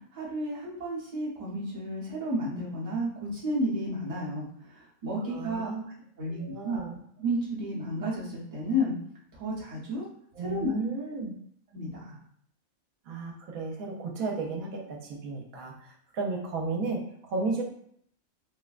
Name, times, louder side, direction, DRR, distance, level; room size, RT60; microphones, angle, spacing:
voice 1, 0.1-4.5 4.7-5.7 6.2-6.9 7.2-8.9 9.4-10.1 10.4-10.7 11.7-12.2, equal, 30° right, -7 dB, 0.8 m, -32 dB
voice 2, 5.2-5.8 6.2-7.0 10.3-11.3 13.1-17.6, right 3 dB, 85° right, 0 dB, 1.0 m, -34 dB
3.3 x 2.1 x 2.4 m, 0.66 s
omnidirectional pair, 1.5 m